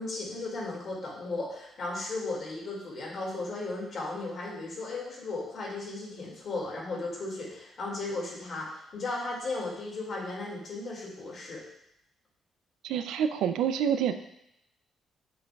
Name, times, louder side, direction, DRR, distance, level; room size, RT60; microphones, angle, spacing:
voice 1, 0.0-11.6, left 2 dB, 55° left, -3 dB, 2.1 m, -35 dB
voice 2, 12.8-14.2, right 8 dB, 85° right, 9 dB, 0.4 m, -27 dB
6.8 x 6.2 x 2.3 m, 0.80 s
cardioid pair, 90°, 0 cm